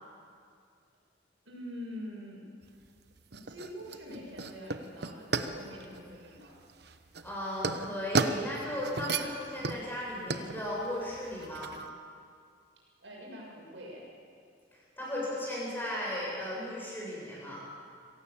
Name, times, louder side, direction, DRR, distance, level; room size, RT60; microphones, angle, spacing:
voice 1, 1.5-2.5 3.3-6.6 9.6-9.8 13.0-14.1, equal, 85° right, -2 dB, 6.9 m, -45 dB
sound 1, 2.6-11.9, right 3 dB, 60° right, 1.0 m, -35 dB
voice 2, 7.2-11.7 15.0-17.6, left 1 dB, 10° left, -5 dB, 7.7 m, -36 dB
25.5 x 16.5 x 7.4 m, 2.2 s
head